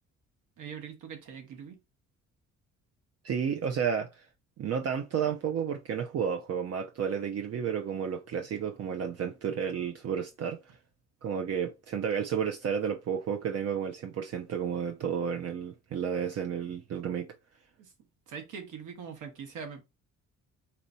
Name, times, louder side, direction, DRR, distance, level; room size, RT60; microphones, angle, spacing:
voice 1, 0.6-1.8 17.8-17.9 18.3-19.8, right 6 dB, 85° right, 1.4 m, -42 dB
voice 2, 3.2-4.3 4.6-10.8 11.2-17.3, right 7 dB, 55° right, 0.6 m, -32 dB
4.3 x 2.7 x 4.4 m
cardioid pair, 90°, 30 cm